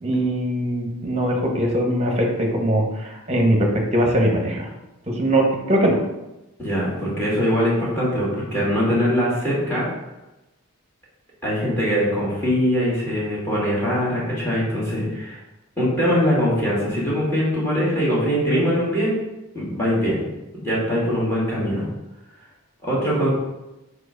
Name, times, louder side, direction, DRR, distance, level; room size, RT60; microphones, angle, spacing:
voice 1, 0.0-4.7 5.2-6.0, right 1 dB, 30° right, 1 dB, 1.1 m, -21 dB
voice 2, 6.6-9.9 11.4-15.4 15.8-19.2 19.5-20.2 20.6-21.9 22.8-23.3, equal, 10° left, -6 dB, 2.3 m, -22 dB
4.9 x 4.7 x 5.2 m, 0.99 s
head